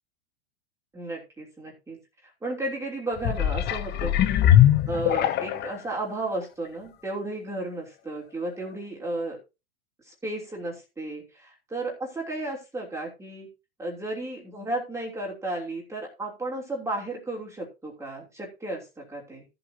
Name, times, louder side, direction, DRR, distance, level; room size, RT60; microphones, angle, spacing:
voice 1, 0.9-2.0 2.4-9.4 10.1-13.5 13.8-19.4, right 2 dB, 10° right, -3 dB, 3.0 m, -34 dB
sound 1, 3.2-5.8 6.4-6.5, left 11 dB, 30° left, 0.8 m, -21 dB
14.0 x 7.9 x 2.8 m, 0.27 s
hypercardioid pair, 125°, 34 cm